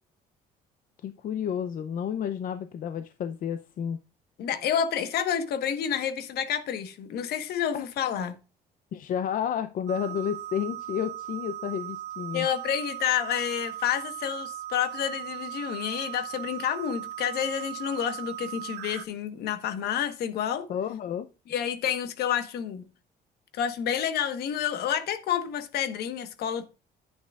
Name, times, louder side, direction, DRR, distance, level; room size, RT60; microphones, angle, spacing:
voice 1, 1.0-4.0 7.7-7.9 8.9-12.5 20.7-21.3, left 8 dB, 55° left, 0.6 m, -31 dB
voice 2, 4.4-8.3 12.3-20.7 21.5-22.8 23.5-26.7, left 9 dB, 70° left, 1.3 m, -29 dB
sound 1, 9.9-19.1, right 13 dB, 85° right, 0.7 m, -38 dB
10.5 x 8.7 x 2.4 m
cardioid pair, 110°, 17 cm